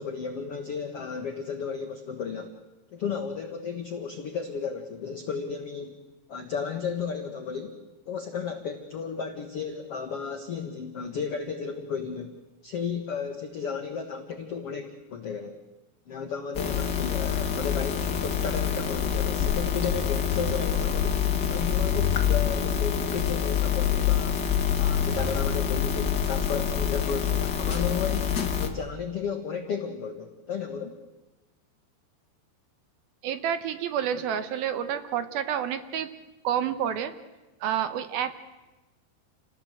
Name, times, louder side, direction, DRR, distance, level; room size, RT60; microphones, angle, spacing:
voice 1, 0.0-2.5 2.9-6.0 6.3-7.8 8.0-12.3 12.6-15.6 16.1-21.2 21.5-24.4 24.8-31.0, left 6 dB, 70° left, 5 dB, 1.4 m, -33 dB
sound 1, 16.5-28.7, left 8 dB, 55° left, 1.1 m, -26 dB
voice 2, 33.2-36.1 36.4-37.1 37.6-38.3, right 9 dB, 70° right, 11 dB, 2.6 m, -29 dB
29.0 x 18.5 x 7.9 m, 1.1 s
omnidirectional pair, 4.9 m